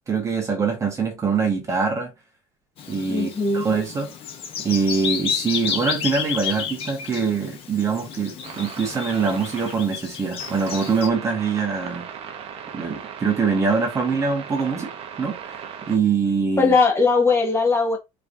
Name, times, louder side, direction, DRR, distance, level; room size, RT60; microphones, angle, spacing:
voice 1, 0.1-2.1 2.9-4.1 4.6-12.1 12.7-14.9 15.2-16.7, right 5 dB, 20° right, 1.3 m, -24 dB
Bird vocalization bird call bird song, 2.8-11.1, left 7 dB, 45° left, 0.9 m, -31 dB
voice 2, 3.1-3.7 16.6-18.0, left 4 dB, 20° left, 1.3 m, -19 dB
sound 1, 8.4-9.8 10.4-16.0, right 8 dB, 45° right, 0.8 m, -37 dB
4.6 x 3.2 x 2.6 m
cardioid pair, 155°, 14 cm